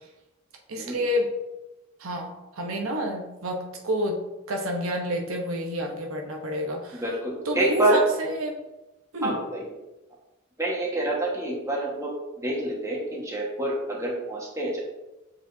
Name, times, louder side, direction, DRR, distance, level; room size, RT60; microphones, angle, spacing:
voice 1, 0.7-1.3 2.0-7.0 7.4-8.6 9.1-9.4, equal, 75° right, 1 dB, 0.9 m, -29 dB
voice 2, 6.9-8.0 9.2-9.7 10.6-12.1 12.4-14.8, right 1 dB, 15° right, -4 dB, 1.4 m, -27 dB
7.7 x 4.5 x 2.7 m, 1.0 s
head